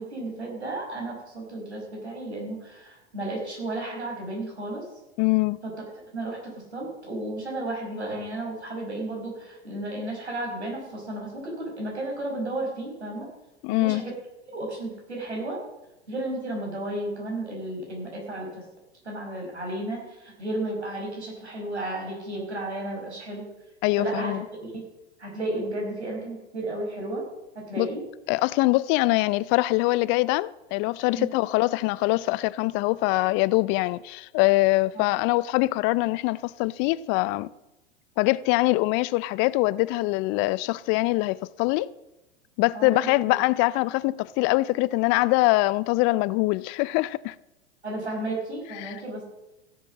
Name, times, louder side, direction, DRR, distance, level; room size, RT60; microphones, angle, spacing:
voice 1, 0.0-4.8 5.6-5.7 6.1-13.3 13.8-14.1 14.5-15.6 16.1-18.6 19.0-23.5 24.0-24.4 24.6-24.8 25.2-27.2 27.5-28.0 31.2-31.3 34.9-35.1 42.7-43.4 47.8-49.2, right 1 dB, 90° right, 5.5 m, -33 dB
voice 2, 5.2-5.6 13.6-14.0 23.8-24.4 27.8-27.9 28.3-37.5 38.2-41.9 42.6-47.3 48.8-48.9, left 20 dB, 40° left, 0.4 m, -23 dB
15.5 x 7.7 x 7.2 m
hypercardioid pair, 90°, 32 cm